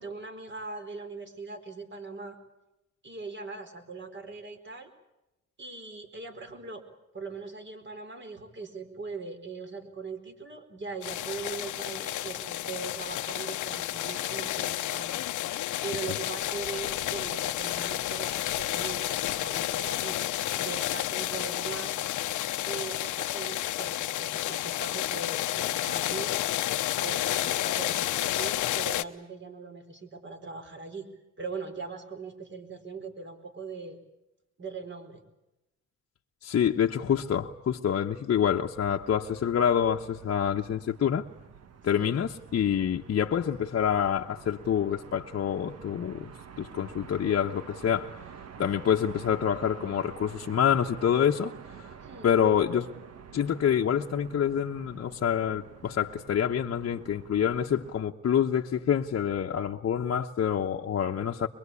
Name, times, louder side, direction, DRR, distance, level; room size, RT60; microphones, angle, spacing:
voice 1, 0.0-2.4 3.0-4.9 5.6-6.8 7.1-15.4 15.8-20.2 20.5-22.0 22.6-26.4 27.0-31.1 31.4-34.0 34.6-35.2 41.9-42.1 52.0-52.3, right 4 dB, 40° right, 7 dB, 4.4 m, -40 dB
sound 1, 11.0-29.0, left 14 dB, 80° left, 1.0 m, -31 dB
voice 2, 36.4-41.2 41.8-46.3 46.6-48.2 48.6-51.5 52.2-52.9 53.3-61.5, left 8 dB, 50° left, 0 dB, 1.1 m, -27 dB
sound 2, 38.7-58.1, right 7 dB, 55° right, 1.7 m, -48 dB
23.0 x 23.0 x 8.5 m, 0.92 s
cardioid pair, 90°, 30 cm